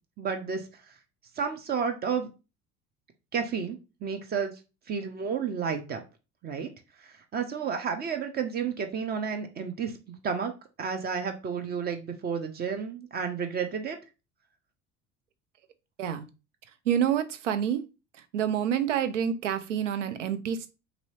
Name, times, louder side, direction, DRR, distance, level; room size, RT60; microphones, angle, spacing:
voice 1, 0.2-0.6 1.4-2.3 3.3-4.5 4.9-6.0 6.4-6.7 7.0-10.5 10.8-14.0, right 6 dB, 25° right, 6 dB, 0.5 m, -31 dB
voice 2, 16.9-17.8 18.3-20.7, right 9 dB, 75° right, 10 dB, 0.5 m, -27 dB
2.8 x 2.6 x 3.0 m, 0.29 s
figure-of-eight pair, 65°, 37 cm